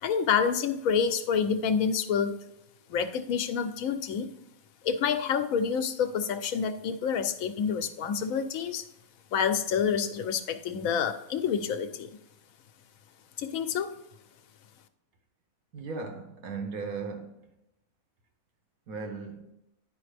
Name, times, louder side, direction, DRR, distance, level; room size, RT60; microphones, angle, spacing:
voice 1, 0.0-2.4 2.9-4.3 4.8-8.8 9.3-12.1 13.4-13.9, left 7 dB, 75° left, 1.0 m, -28 dB
voice 2, 15.7-17.6 18.9-19.5, right 4 dB, 85° right, 1.5 m, -37 dB
9.9 x 5.0 x 3.3 m
omnidirectional pair, 1.5 m